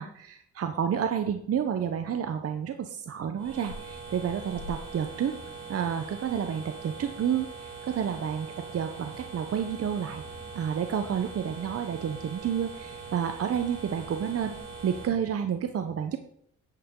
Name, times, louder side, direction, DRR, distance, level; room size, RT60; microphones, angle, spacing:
voice 1, 0.0-5.4 5.7-10.2 10.5-14.5 14.8-16.2, right 8 dB, 50° right, 7 dB, 0.9 m, -30 dB
sound 1, 3.4-15.1, right 4 dB, 80° right, 4.8 m, -42 dB
11.0 x 8.7 x 3.8 m, 0.70 s
cardioid pair, 90°, 30 cm